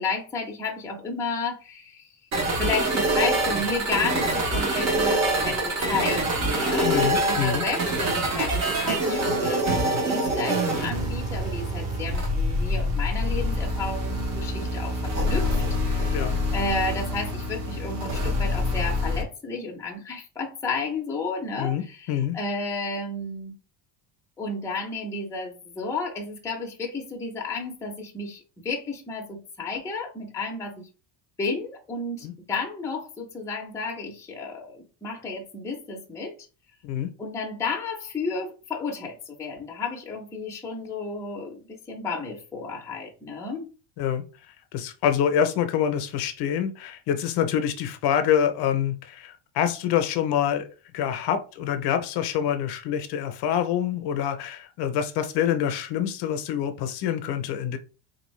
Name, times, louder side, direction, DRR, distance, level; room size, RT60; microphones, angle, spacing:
voice 1, 0.0-2.1 2.6-15.5 15.9-23.5 24.4-30.9 31.4-36.3 37.2-43.7, left 3 dB, 5° left, 0.5 m, -32 dB
sound 1, 2.3-19.2, right 1 dB, 35° right, 0.8 m, -25 dB
voice 2, 6.8-7.6 16.1-16.4 21.6-21.8 22.1-22.4 32.2-32.3 36.8-37.1 44.0-44.2 44.7-50.7 50.9-57.8, left 9 dB, 55° left, 0.6 m, -26 dB
4.0 x 2.6 x 3.1 m
cardioid pair, 165°, 48 cm